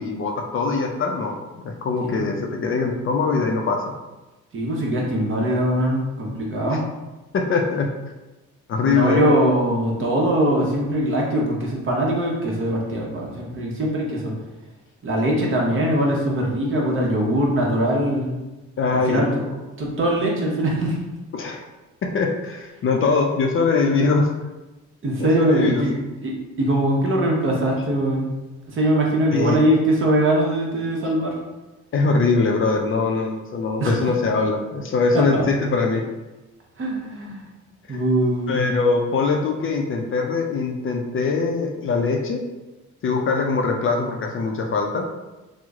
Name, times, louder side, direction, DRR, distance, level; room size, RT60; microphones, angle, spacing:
voice 1, 0.0-3.8 6.6-6.8 7.3-7.9 8.7-9.3 18.8-19.4 21.3-21.6 22.0-24.3 25.2-26.1 29.3-29.6 31.9-36.0 37.9-38.0 38.5-42.4 43.0-45.1, left 4 dB, 45° left, 2 dB, 0.4 m, -22 dB
voice 2, 4.5-6.8 8.9-14.3 15.0-18.3 18.9-19.3 19.8-21.0 25.0-25.9 26.2-28.3 28.7-31.3 33.8-33.9 35.1-35.4 36.8-37.5 37.9-38.6, right 1 dB, 45° right, -2 dB, 0.9 m, -22 dB
3.0 x 2.0 x 3.5 m, 1.1 s
cardioid pair, 90°, 30 cm